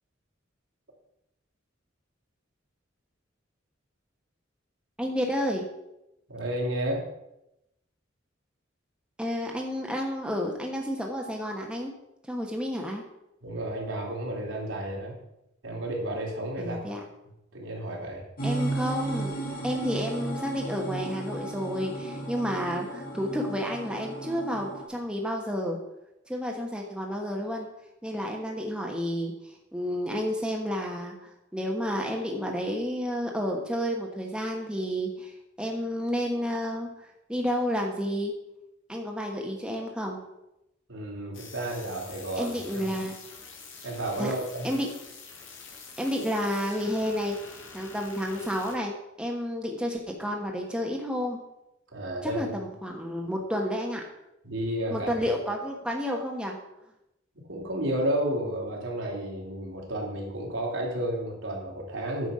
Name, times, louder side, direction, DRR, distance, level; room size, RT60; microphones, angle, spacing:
voice 1, 5.0-5.6 9.2-11.9 12.3-13.0 16.6-17.0 18.4-19.3 19.6-25.8 26.3-27.7 28.0-29.3 29.7-35.3 35.6-36.9 37.3-38.3 38.9-40.2 42.4-43.1 44.2-44.3 44.6-44.9 46.0-47.4 47.7-51.4 52.2-54.0 54.9-56.6, equal, 5° right, 0 dB, 1.2 m, -30 dB
voice 2, 6.3-7.0 13.4-15.2 15.6-17.0 17.5-18.2 40.9-42.8 43.8-44.7 51.9-52.4 54.4-55.3 57.5-62.3, right 1 dB, 75° right, -2 dB, 2.9 m, -32 dB
sound 1, 18.4-24.9, right 2 dB, 50° left, 2.2 m, -34 dB
sound 2, 41.3-48.8, left 4 dB, 75° left, 1.8 m, -46 dB
9.5 x 7.2 x 4.9 m, 0.88 s
head